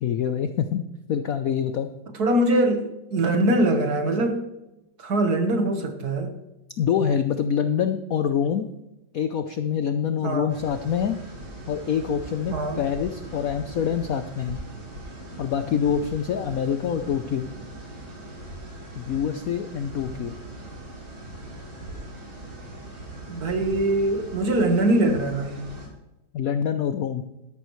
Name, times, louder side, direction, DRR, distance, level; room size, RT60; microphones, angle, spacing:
voice 1, 0.0-1.9 6.8-8.7 9.1-11.2 11.7-14.6 15.4-17.5 18.9-20.4 26.3-27.2, left 8 dB, 70° left, 8 dB, 0.8 m, -25 dB
voice 2, 2.2-4.4 5.0-6.3 10.2-10.6 12.5-12.8 23.3-25.6, right 1 dB, 55° right, 6 dB, 1.7 m, -22 dB
sound 1, 10.5-25.9, right 1 dB, 70° right, 4.7 m, -40 dB
12.5 x 11.5 x 3.1 m, 0.93 s
omnidirectional pair, 2.2 m